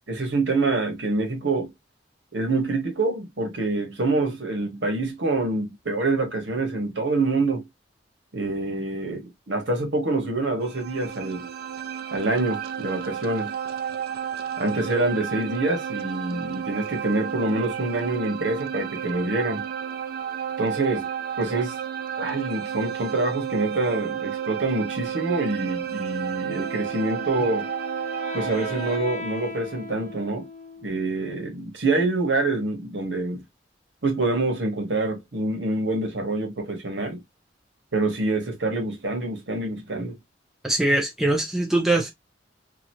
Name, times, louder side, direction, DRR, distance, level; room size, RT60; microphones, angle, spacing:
voice 1, 0.1-1.7 2.3-7.7 8.3-11.5 12.1-13.5 14.6-19.7 20.6-21.1 21.4-21.8 22.2-27.7 28.3-30.5 30.8-33.4 34.0-37.2 37.9-40.2, right 2 dB, 70° right, 1.2 m, -26 dB
sound 1, 10.6-29.0, right 8 dB, 55° right, 0.4 m, -32 dB
Wind instrument woodwind instrument, 26.5-31.3, left 2 dB, 40° left, 0.7 m, -38 dB
voice 2, 40.6-42.1, right 2 dB, ahead, 0.6 m, -22 dB
2.9 x 2.4 x 2.7 m
head